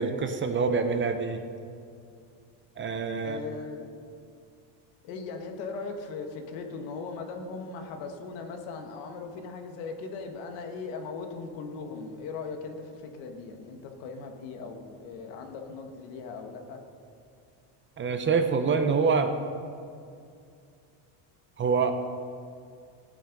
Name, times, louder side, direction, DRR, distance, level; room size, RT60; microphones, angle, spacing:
voice 1, 0.0-1.4 2.8-3.4 18.0-19.3 21.6-21.9, right 5 dB, 25° right, 7 dB, 0.8 m, -26 dB
voice 2, 3.2-3.9 5.0-16.8, left 4 dB, 80° left, 4 dB, 1.8 m, -39 dB
16.0 x 9.2 x 5.3 m, 2.4 s
cardioid pair, 140°, 44 cm